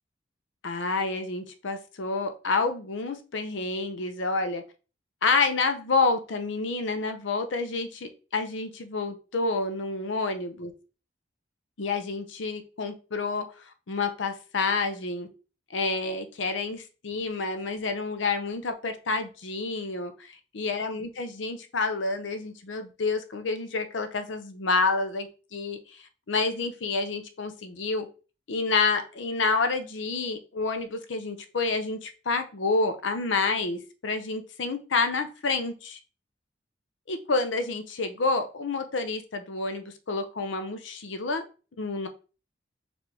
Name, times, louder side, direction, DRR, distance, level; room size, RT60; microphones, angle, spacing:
voice 1, 0.6-4.6 5.2-10.7 11.8-13.5 13.9-15.3 15.7-25.8 26.3-28.1 28.5-36.0 37.1-41.4 41.8-42.1, left 3 dB, 90° left, 8 dB, 0.7 m, -29 dB
4.3 x 3.3 x 2.8 m, 0.34 s
head